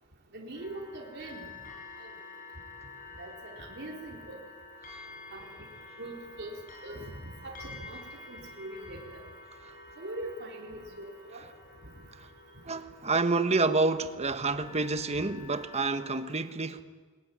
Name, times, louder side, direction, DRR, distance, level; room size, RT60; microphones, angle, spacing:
voice 1, 0.3-1.5 2.0-2.1 3.2-4.4 5.3-5.6 6.0-6.6 6.8-7.1 7.4-8.0 8.3-9.2 10.0-11.4 11.8-11.9 15.1-15.2, right 1 dB, 50° right, 4.0 m, -42 dB
sound 1, 0.5-16.2, left 3 dB, 40° left, 7.2 m, -49 dB
voice 2, 12.7-16.8, right 3 dB, 30° right, 1.2 m, -28 dB
22.0 x 20.5 x 9.9 m
head